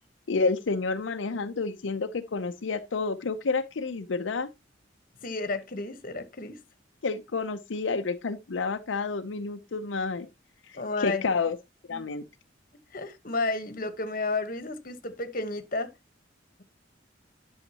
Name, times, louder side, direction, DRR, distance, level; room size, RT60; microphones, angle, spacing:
voice 1, 0.3-4.5 7.0-10.3 10.7-11.6 11.9-12.2, left 4 dB, 80° left, 0.6 m, -29 dB
voice 2, 5.2-6.6 10.7-11.2 11.9-12.0 12.9-15.9, left 3 dB, 45° left, 1.2 m, -32 dB
11.0 x 6.4 x 2.9 m
head